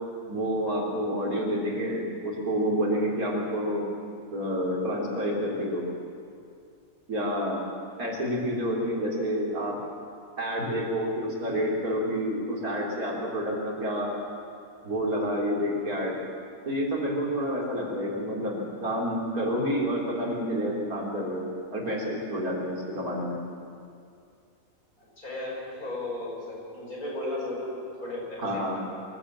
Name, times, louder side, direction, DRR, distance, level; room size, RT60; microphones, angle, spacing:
voice 1, 0.3-3.9 4.3-5.8 7.1-7.6 8.0-9.8 10.4-14.1 14.8-16.2 16.6-23.4 28.4-28.8, equal, 85° right, -3 dB, 4.2 m, -29 dB
voice 2, 25.0-28.9, left 2 dB, 75° left, -3 dB, 6.6 m, -35 dB
23.5 x 16.0 x 7.5 m, 2.4 s
omnidirectional pair, 1.5 m